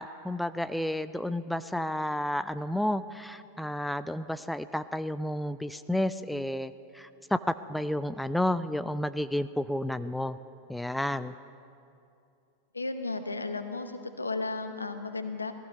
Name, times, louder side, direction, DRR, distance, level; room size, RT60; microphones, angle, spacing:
voice 1, 0.0-10.4 10.7-11.3, left 1 dB, 5° left, 13 dB, 0.4 m, -31 dB
voice 2, 12.7-13.9 14.2-15.5, left 3 dB, 80° left, 8 dB, 1.0 m, -34 dB
18.5 x 14.5 x 5.4 m, 2.6 s
figure-of-eight pair, 90°, 0 cm